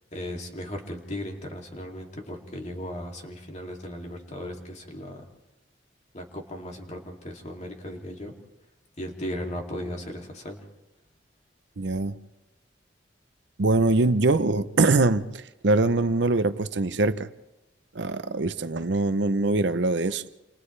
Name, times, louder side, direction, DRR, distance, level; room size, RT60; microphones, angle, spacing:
voice 1, 0.1-5.3 6.1-8.3 9.0-10.6, left 1 dB, 40° left, 2.7 m, -36 dB
voice 2, 11.8-12.1 13.6-15.2 15.6-17.3 17.9-20.2, right 2 dB, 65° right, 0.7 m, -23 dB
29.5 x 28.0 x 3.3 m
head